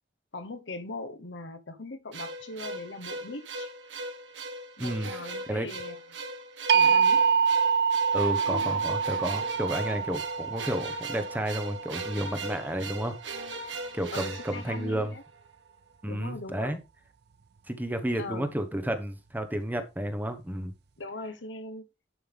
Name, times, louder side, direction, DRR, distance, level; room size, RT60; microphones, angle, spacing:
voice 1, 0.3-3.7 4.8-6.0 6.7-7.2 14.1-15.2 16.0-16.8 18.1-18.5 21.0-21.9, left 2 dB, 75° left, 1.1 m, -40 dB
sound 1, 2.1-15.4, right 2 dB, 80° right, 1.5 m, -39 dB
voice 2, 4.8-5.1 5.5-5.7 8.1-13.1 13.9-15.1 16.0-16.8 17.7-20.7, right 1 dB, 10° right, 1.1 m, -31 dB
sound 2, 6.7-12.7, right 6 dB, 65° right, 0.5 m, -26 dB
11.0 x 5.5 x 3.5 m
head